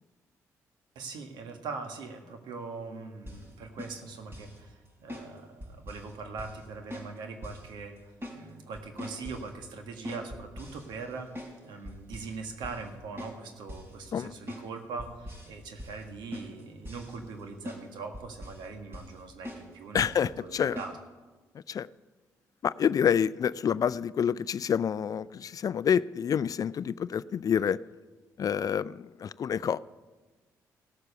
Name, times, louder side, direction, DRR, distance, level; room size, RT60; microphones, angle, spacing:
voice 1, 0.9-8.0 8.3-11.3 11.6-20.9, right 4 dB, 75° right, 5 dB, 1.6 m, -41 dB
sound 1, 3.3-3.5 3.8-4.6 5.1-5.3 5.6-6.1 6.4-6.6 6.9-7.1 7.4-7.7 8.0-8.4 8.7-9.5 10.1-11.6 11.9-12.4 12.6-12.9 13.2-13.4 13.7-13.9 14.5-14.7 15.0-15.5 15.8-16.0 16.3-17.4 17.7-17.8 18.1-18.7 18.9-19.2 19.4-19.7 20.0-20.2 20.8-20.9, left 1 dB, 30° right, 4.7 m, -42 dB
voice 2, 19.9-20.8 21.7-21.9 22.6-27.8 28.4-29.8, left 8 dB, 50° left, 19 dB, 0.4 m, -28 dB
16.0 x 6.8 x 6.8 m, 1.3 s
supercardioid pair, 55°, 8 cm